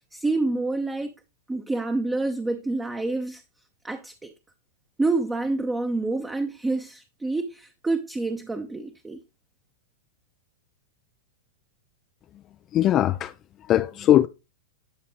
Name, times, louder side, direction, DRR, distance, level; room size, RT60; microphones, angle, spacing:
voice 1, 0.1-1.1 1.5-3.4 3.8-4.3 5.0-9.2, right 2 dB, 10° right, 0.8 m, -27 dB
voice 2, 12.7-14.3, left 12 dB, 35° left, 0.3 m, -21 dB
11.0 x 5.0 x 3.0 m
hypercardioid pair, 110°, 0 cm